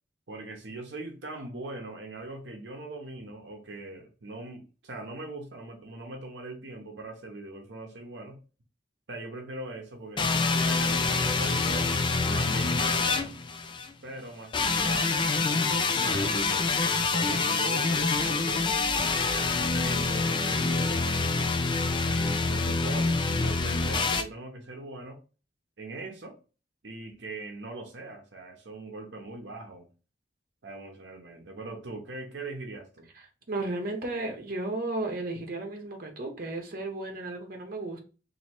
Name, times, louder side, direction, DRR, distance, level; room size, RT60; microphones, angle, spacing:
voice 1, 0.3-8.4 9.1-12.0 12.3-13.3 14.0-18.8 19.3-21.5 22.0-25.2 25.8-26.4 26.8-29.9 30.6-33.1, right 2 dB, 75° right, 0.8 m, -41 dB
sound 1, 10.2-13.9 14.5-24.2, left 4 dB, 25° left, 0.4 m, -26 dB
voice 2, 33.5-38.0, right 2 dB, 50° right, 0.9 m, -34 dB
3.1 x 2.7 x 4.3 m
head